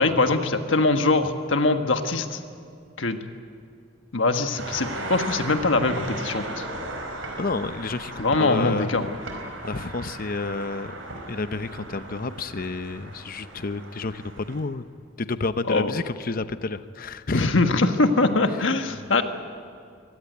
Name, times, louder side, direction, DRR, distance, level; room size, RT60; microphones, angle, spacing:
voice 1, 0.0-2.4 3.0-3.2 4.1-6.6 8.2-9.1 15.7-15.9 17.3-19.2, left 3 dB, 70° left, 7 dB, 1.5 m, -22 dB
sound 1, 4.6-14.6, right 2 dB, 85° right, 5.0 m, -37 dB
voice 2, 7.4-8.9 9.6-10.9 11.3-14.8 15.2-17.7 18.4-18.6 18.9-19.1, left 3 dB, 45° left, 12 dB, 0.7 m, -30 dB
23.5 x 17.0 x 9.3 m, 2.3 s
head